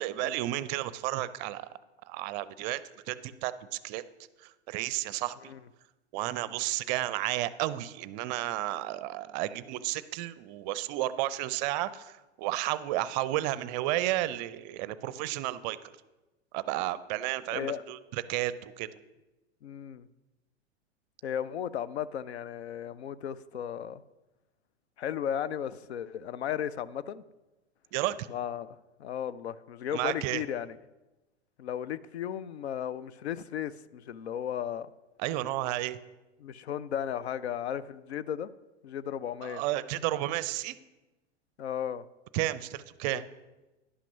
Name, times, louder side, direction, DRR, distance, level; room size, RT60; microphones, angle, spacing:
voice 1, 0.0-1.6 2.1-2.8 3.1-4.0 4.4-5.5 6.1-15.8 16.5-18.9 27.9-28.3 29.9-30.4 35.2-36.0 39.4-40.8 42.3-43.2, right 15 dB, 40° right, 16 dB, 0.5 m, -32 dB
voice 2, 17.5-17.8 19.6-20.1 21.2-24.0 25.0-27.2 28.3-28.7 29.0-30.8 31.6-34.9 36.4-38.5 38.8-39.6 41.6-42.0 43.1-43.2, left 9 dB, 70° left, 16 dB, 0.5 m, -35 dB
11.0 x 5.9 x 5.8 m, 1.1 s
figure-of-eight pair, 90°, 34 cm